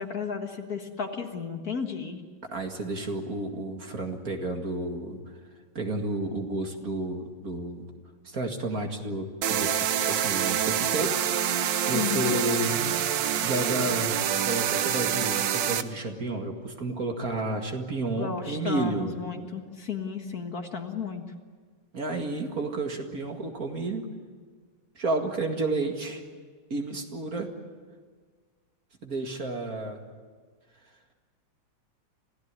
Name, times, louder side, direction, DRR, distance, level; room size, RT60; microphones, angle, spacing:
voice 1, 0.0-2.2 11.9-12.4 18.2-21.3, left 6 dB, 50° left, 4 dB, 2.0 m, -33 dB
voice 2, 2.4-5.2 5.7-7.9 8.2-11.2 11.9-12.8 13.4-14.2 14.4-19.1 21.9-24.1 25.0-26.2 26.7-27.5 29.0-30.0, right 2 dB, 45° right, 3 dB, 2.4 m, -31 dB
sound 1, 9.4-15.8, right 9 dB, 70° right, 1.5 m, -26 dB
26.5 x 16.5 x 9.6 m, 1.5 s
omnidirectional pair, 2.2 m